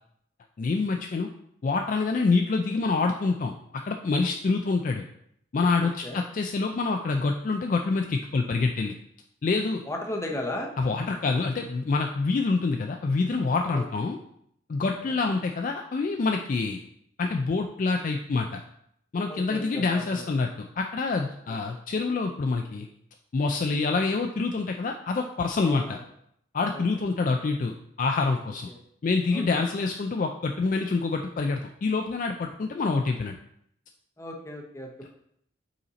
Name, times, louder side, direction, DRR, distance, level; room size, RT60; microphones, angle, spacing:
voice 1, 0.6-1.3 1.6-5.0 5.5-8.9 9.4-9.8 10.8-14.2 14.7-16.8 17.2-18.6 19.1-22.9 23.3-26.0 26.5-28.7 29.0-33.3, left 3 dB, 40° left, 3 dB, 0.3 m, -26 dB
voice 2, 9.9-10.7 13.7-13.9 14.8-14.9 19.3-20.2 25.6-26.0 29.3-29.4 34.2-35.1, left 1 dB, 15° left, 1 dB, 0.7 m, -35 dB
5.5 x 4.2 x 4.0 m, 0.71 s
head